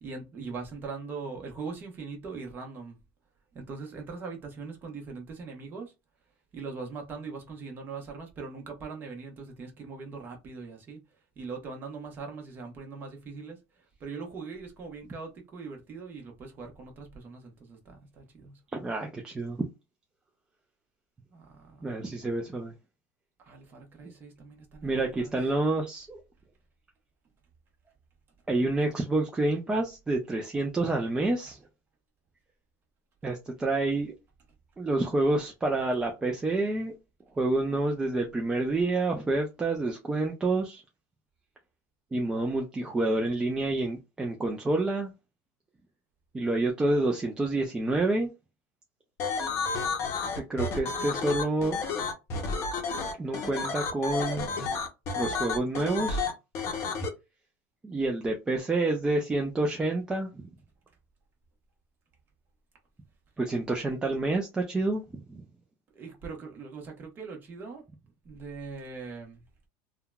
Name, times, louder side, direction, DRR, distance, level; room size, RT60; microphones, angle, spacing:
voice 1, 0.0-3.0 3.5-5.9 6.5-11.0 11.3-18.6 21.3-22.0 23.4-25.4 31.4-31.5 65.9-67.8 68.2-69.4, right 4 dB, 25° right, 0.9 m, -41 dB
voice 2, 18.7-19.6 21.8-22.7 24.8-26.2 28.5-31.6 33.2-34.1 34.8-36.9 37.4-40.8 42.1-45.1 46.3-48.3 50.5-51.8 53.2-54.5 55.2-56.3 57.8-60.4 63.4-65.4, right 2 dB, 10° right, 0.4 m, -28 dB
sound 1, 49.2-57.1, left 4 dB, 35° left, 0.7 m, -31 dB
3.6 x 2.2 x 2.2 m
supercardioid pair, 155°, 8 cm